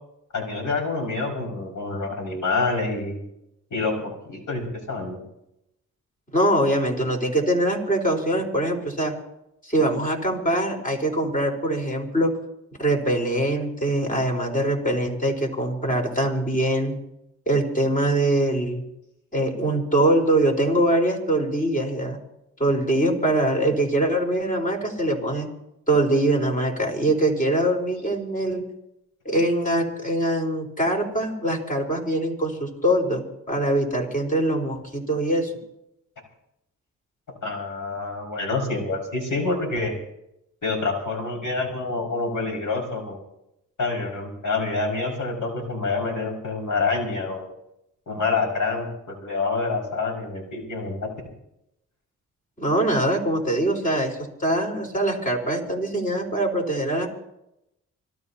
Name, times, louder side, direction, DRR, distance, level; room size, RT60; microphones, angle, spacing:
voice 1, 0.3-3.2 3.7-5.2 37.4-39.9 40.6-43.2 43.8-47.5 48.1-51.1, left 3 dB, 55° left, 1 dB, 6.0 m, -27 dB
voice 2, 6.3-9.1 9.6-12.3 12.8-16.9 17.5-18.8 19.3-22.2 22.6-25.5 25.9-28.6 29.2-35.5 52.6-57.1, right 1 dB, 20° left, 1 dB, 4.6 m, -23 dB
25.5 x 17.0 x 2.9 m, 0.82 s
supercardioid pair, 45°, 36 cm